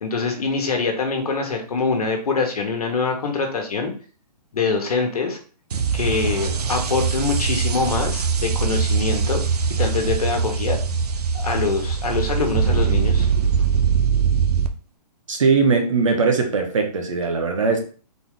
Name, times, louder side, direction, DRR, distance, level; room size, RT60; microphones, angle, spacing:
voice 1, 0.0-3.9 4.5-5.4 5.9-9.4 9.8-10.8 11.3-13.3, left 4 dB, 60° left, 1.3 m, -24 dB
sound 1, 5.7-14.7, right 6 dB, 65° right, 0.6 m, -22 dB
voice 2, 15.3-17.8, right 4 dB, 50° right, 1.0 m, -20 dB
4.1 x 3.4 x 3.8 m
hypercardioid pair, 180°, 21 cm